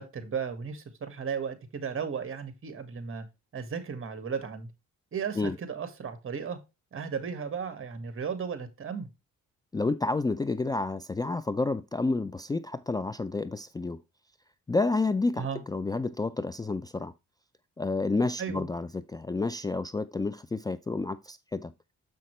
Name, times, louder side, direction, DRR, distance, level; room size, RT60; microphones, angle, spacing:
voice 1, 0.0-3.3 3.5-4.7 5.1-6.6 6.9-9.1 15.4-15.6 18.4-18.7, right 6 dB, 45° right, 1.8 m, -35 dB
voice 2, 9.7-14.0 14.7-17.1 17.8-21.7, left 3 dB, 15° left, 0.4 m, -30 dB
7.5 x 5.7 x 3.1 m
cardioid pair, 90°, 30 cm